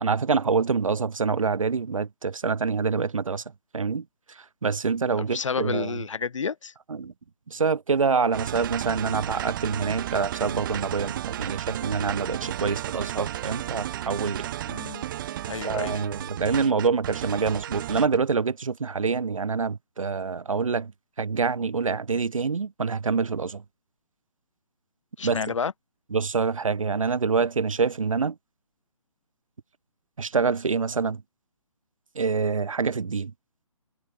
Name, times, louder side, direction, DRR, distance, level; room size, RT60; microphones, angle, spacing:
voice 1, 0.0-3.4 3.7-4.0 4.6-6.0 6.9-7.1 7.5-14.5 15.6-20.9 21.2-23.6 25.2-25.4 26.1-28.3 30.2-31.2 32.2-33.3, right 5 dB, 65° right, 7.5 m, -26 dB
voice 2, 5.2-6.7 14.7-15.0 15.5-16.1 25.2-25.7, left 6 dB, 60° left, 3.5 m, -30 dB
sound 1, 8.3-18.2, right 12 dB, 35° right, 5.8 m, -33 dB
figure-of-eight pair, 145°, 18 cm